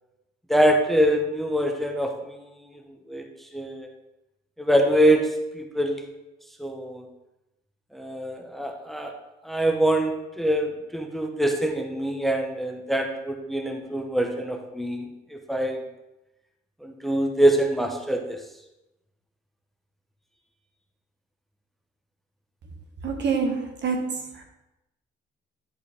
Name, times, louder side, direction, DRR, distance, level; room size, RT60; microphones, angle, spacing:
voice 1, 0.5-3.2 3.5-3.9 4.6-6.0 6.6-7.1 7.9-9.1 9.4-15.8 16.8-18.4, right 1 dB, ahead, 3 dB, 0.9 m, -24 dB
voice 2, 23.0-24.2, right 5 dB, 60° right, 3 dB, 1.3 m, -26 dB
10.0 x 4.5 x 3.6 m, 0.94 s
cardioid pair, 90°, 20 cm